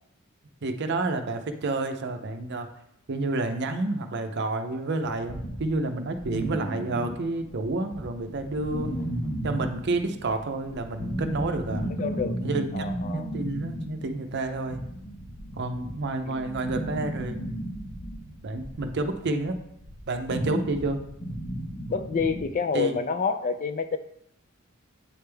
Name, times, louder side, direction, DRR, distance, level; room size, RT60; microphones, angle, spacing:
voice 1, 0.6-2.7 3.1-8.9 9.4-11.9 12.4-14.8 15.6-17.4 18.4-19.6 20.1-21.0 22.7-23.0, right 2 dB, 55° right, 7 dB, 0.6 m, -29 dB
sound 1, 5.3-7.6 7.9-22.4, right 1 dB, 55° left, 1.3 m, -34 dB
voice 2, 11.9-12.4 12.7-13.3 16.2-16.6 21.9-24.0, left 5 dB, 40° left, 10 dB, 0.3 m, -28 dB
8.6 x 3.4 x 3.3 m, 0.75 s
head